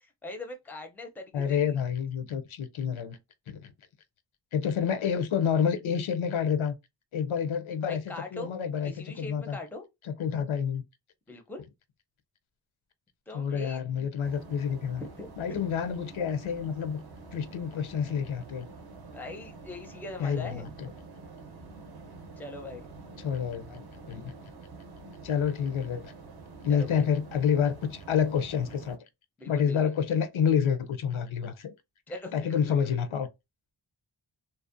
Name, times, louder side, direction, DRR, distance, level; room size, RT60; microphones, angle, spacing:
voice 1, 0.0-1.8 7.8-8.5 8.8-9.8 11.3-11.6 13.3-13.8 15.0-15.6 19.1-20.7 22.4-22.9 26.7-27.0 29.4-29.8 32.1-32.8, left 2 dB, 5° left, 0.5 m, -41 dB
voice 2, 1.3-3.2 3.5-3.7 4.5-6.7 7.1-9.6 10.0-10.8 13.3-15.0 15.4-17.0 17.3-18.7 20.2-20.9 23.2-23.8 24.1-24.3 25.2-26.1 26.6-29.0 29.5-31.7 32.3-33.3, left 7 dB, 75° left, 0.6 m, -28 dB
sound 1, 14.2-29.0, right 3 dB, 50° right, 0.6 m, -47 dB
2.6 x 2.0 x 2.5 m
wide cardioid pair, 65°, 48 cm